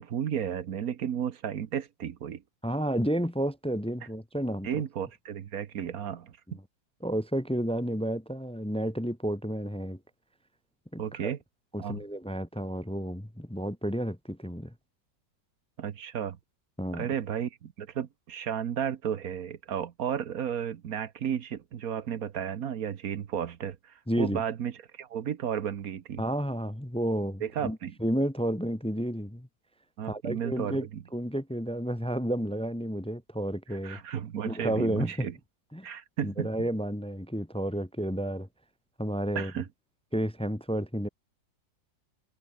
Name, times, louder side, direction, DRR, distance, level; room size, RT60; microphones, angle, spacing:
voice 1, 0.0-2.4 4.6-6.6 11.0-11.4 11.8-12.0 15.8-16.4 16.9-26.2 27.4-27.9 30.0-31.0 33.8-35.3 35.8-36.7 39.3-39.7, right 9 dB, 55° right, 1.4 m, -33 dB
voice 2, 2.6-4.8 6.5-6.6 7.0-10.0 10.9-11.3 11.7-14.7 16.8-17.1 24.1-24.4 26.2-29.5 30.1-30.9 31.1-34.0 34.4-35.3 35.7-35.9 36.2-38.5 39.0-39.5 40.1-41.1, equal, 5° left, 0.4 m, -31 dB
omnidirectional pair, 2.0 m